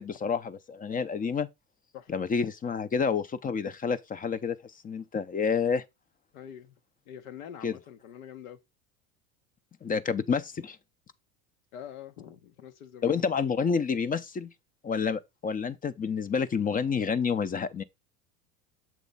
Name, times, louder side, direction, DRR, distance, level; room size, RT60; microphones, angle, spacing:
voice 1, 0.0-1.5 2.1-4.6 4.8-5.8 7.6-7.7 9.8-10.8 13.0-14.5 14.8-17.8, left 6 dB, 20° left, 0.5 m, -29 dB
voice 2, 6.3-6.7 7.1-8.6 11.7-13.3, left 9 dB, 80° left, 1.0 m, -45 dB
7.3 x 3.1 x 5.4 m
hypercardioid pair, 90°, 42 cm